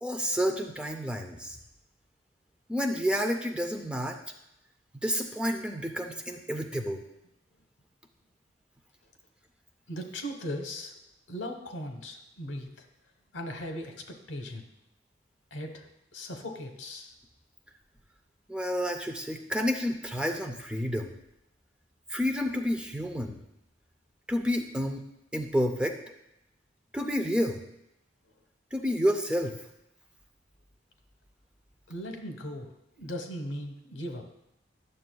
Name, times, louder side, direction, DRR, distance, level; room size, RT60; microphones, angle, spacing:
voice 1, 0.0-1.6 2.7-4.2 5.0-7.0 18.5-21.1 22.1-23.4 24.3-25.0 25.3-26.0 26.9-27.6 28.7-29.6, equal, 5° right, 3 dB, 0.5 m, -29 dB
voice 2, 9.9-10.9 11.3-12.8 13.3-14.6 15.5-15.9 16.1-17.1 31.9-34.2, equal, 85° left, 5 dB, 1.0 m, -38 dB
11.0 x 6.6 x 2.3 m, 0.86 s
head